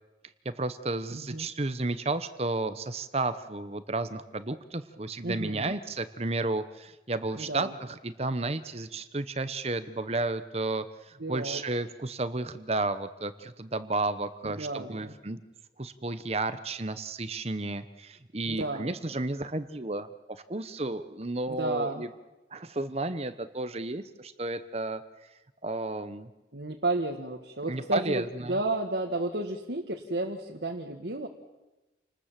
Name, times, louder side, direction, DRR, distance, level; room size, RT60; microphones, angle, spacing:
voice 1, 0.4-15.4 15.8-22.1 22.5-25.0 25.6-26.3 27.7-28.5, right 2 dB, 35° right, 12 dB, 0.9 m, -32 dB
voice 2, 1.1-1.5 5.2-5.7 7.3-7.7 11.2-11.6 14.4-15.2 18.5-18.9 21.5-22.0 26.5-31.3, right 2 dB, 75° right, 1 dB, 1.9 m, -32 dB
29.0 x 20.0 x 7.6 m, 1.1 s
head